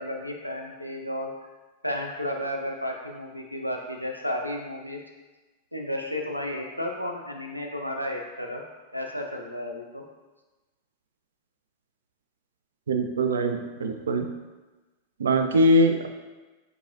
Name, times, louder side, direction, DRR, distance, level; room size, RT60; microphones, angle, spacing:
voice 1, 0.0-1.3 1.8-5.0 5.7-8.6 8.9-10.0, left 1 dB, 90° left, 1 dB, 0.5 m, -32 dB
voice 2, 12.9-14.3 15.2-16.1, equal, 70° right, 6 dB, 0.4 m, -22 dB
5.4 x 2.6 x 2.6 m, 1.2 s
figure-of-eight pair, 90°, 0 cm